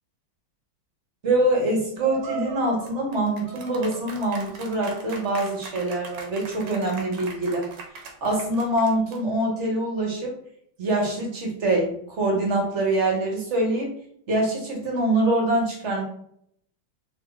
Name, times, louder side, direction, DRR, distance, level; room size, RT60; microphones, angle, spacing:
voice 1, 1.2-7.7 8.2-10.3 10.8-13.9 14.3-16.0, right 1 dB, 45° right, -1 dB, 1.0 m, -24 dB
sound 1, 2.0-9.4, right 5 dB, 70° right, 1.3 m, -40 dB
3.6 x 2.8 x 3.9 m, 0.70 s
omnidirectional pair, 2.2 m